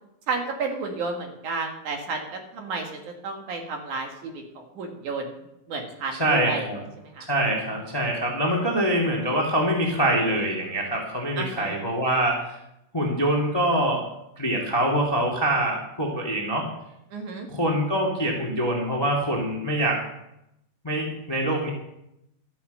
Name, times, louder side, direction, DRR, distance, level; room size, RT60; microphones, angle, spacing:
voice 1, 0.3-5.4 5.7-6.7 7.0-7.3 11.4-11.8 17.1-17.5, right 4 dB, 60° right, 2 dB, 2.9 m, -32 dB
voice 2, 6.1-6.8 7.3-12.6 12.9-14.0 14.4-16.7 17.5-20.0 20.8-21.7, right 1 dB, 10° left, -1 dB, 1.2 m, -24 dB
13.5 x 7.1 x 6.6 m, 0.83 s
omnidirectional pair, 4.2 m